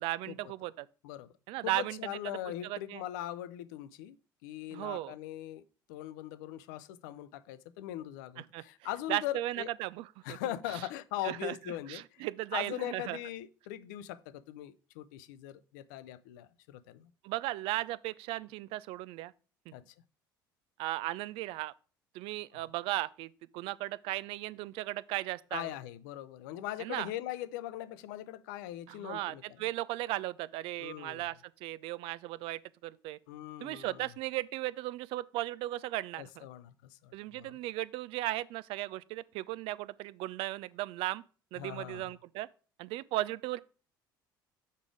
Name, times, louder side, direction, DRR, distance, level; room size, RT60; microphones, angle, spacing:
voice 1, 0.0-0.9 1.5-2.0 2.2-3.0 4.7-5.2 8.5-8.6 9.1-10.4 11.2-11.5 11.9-13.2 17.2-19.3 20.8-21.7 22.1-25.7 26.8-27.1 28.9-33.2 33.6-36.5 37.1-41.2 41.5-42.5 42.8-43.6, right 17 dB, 55° right, 0.4 m, -36 dB
voice 2, 1.6-4.2 4.4-5.6 5.9-9.7 10.2-12.2 12.5-17.1 19.7-19.9 22.5-22.7 25.5-29.4 30.8-31.3 33.3-34.1 36.2-37.6 41.6-42.1, left 13 dB, 65° left, 0.6 m, -40 dB
6.7 x 4.9 x 4.8 m
figure-of-eight pair, 60°, 11 cm